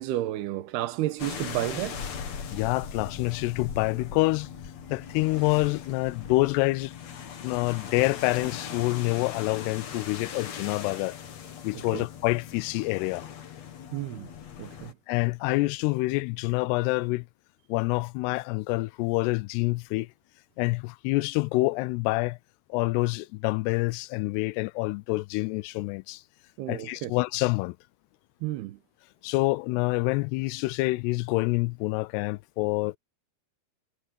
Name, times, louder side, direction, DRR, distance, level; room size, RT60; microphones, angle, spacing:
voice 1, 0.0-2.1 11.7-12.1 13.9-14.3 14.6-15.0 26.6-27.1 28.4-28.8, right 15 dB, 80° right, 3.1 m, -32 dB
sound 1, 1.2-14.9, left 7 dB, 50° left, 2.6 m, -40 dB
voice 2, 2.5-4.5 4.9-6.9 7.4-11.2 11.6-13.3 15.1-17.3 17.7-20.1 20.6-22.4 22.7-26.2 26.7-27.8 29.2-33.0, left 22 dB, 90° left, 2.7 m, -27 dB
omnidirectional pair, 4.6 m